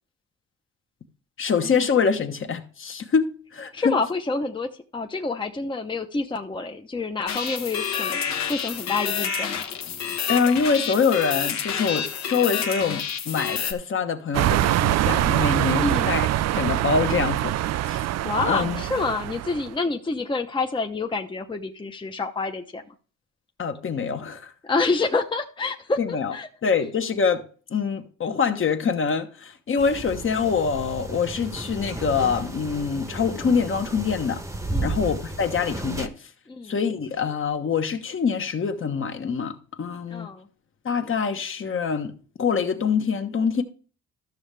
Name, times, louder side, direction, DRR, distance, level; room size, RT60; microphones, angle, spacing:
voice 1, 1.4-4.0 10.3-16.3 16.5-17.5 17.8-18.0 18.4-18.8 23.6-24.5 26.0-26.3 26.6-27.4 27.7-34.4 34.8-36.1 36.6-40.3 40.8-43.6, left 6 dB, 45° left, 1.2 m, -25 dB
voice 2, 3.7-8.2 8.5-9.6 15.8-16.2 18.2-22.8 24.6-26.5 34.7-35.0 36.5-36.7 40.1-40.5, left 3 dB, 15° left, 0.8 m, -27 dB
sound 1, 7.3-13.7, left 7 dB, 60° left, 1.3 m, -29 dB
sound 2, 14.3-19.7, right 13 dB, 60° right, 0.4 m, -24 dB
sound 3, 29.8-36.1, right 2 dB, 10° right, 1.0 m, -33 dB
13.0 x 6.4 x 3.3 m
cardioid pair, 90°, 30 cm